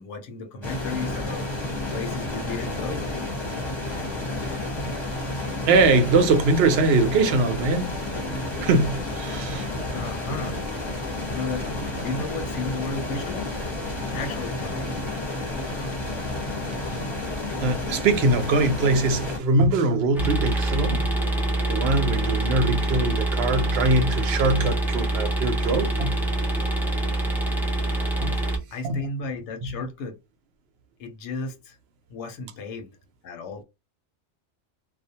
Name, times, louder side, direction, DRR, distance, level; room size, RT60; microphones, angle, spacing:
voice 1, 0.0-3.1 9.9-10.6 11.3-11.7 12.0-13.5 14.1-14.9 28.7-30.2 31.0-31.8 32.1-33.0 33.2-33.6, left 3 dB, 85° left, 1.0 m, -33 dB
sound 1, 0.6-19.4, left 2 dB, 25° left, 0.8 m, -31 dB
voice 2, 5.7-7.9 8.6-9.7 17.6-21.1 21.7-26.1 28.2-28.4 28.8-29.0, right 3 dB, 70° right, 0.8 m, -22 dB
sound 2, 20.1-28.6, right 2 dB, 5° right, 0.4 m, -25 dB
2.4 x 2.1 x 2.7 m
omnidirectional pair, 1.2 m